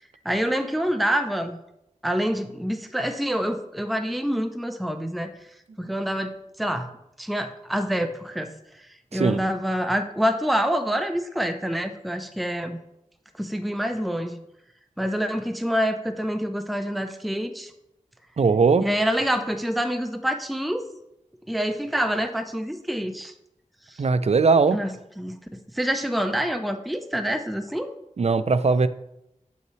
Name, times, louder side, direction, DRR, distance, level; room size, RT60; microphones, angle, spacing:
voice 1, 0.2-1.6 2.0-5.3 5.8-6.9 7.2-8.5 8.8-8.9 9.1-12.8 13.4-14.4 15.0-17.7 18.8-20.9 21.5-23.3 23.9-24.0 24.7-27.9, equal, ahead, 8 dB, 0.5 m, -26 dB
voice 2, 18.4-18.8 24.0-24.8 28.2-28.9, right 4 dB, 55° right, 13 dB, 0.4 m, -19 dB
7.8 x 5.6 x 3.1 m, 0.83 s
wide cardioid pair, 50°, 13 cm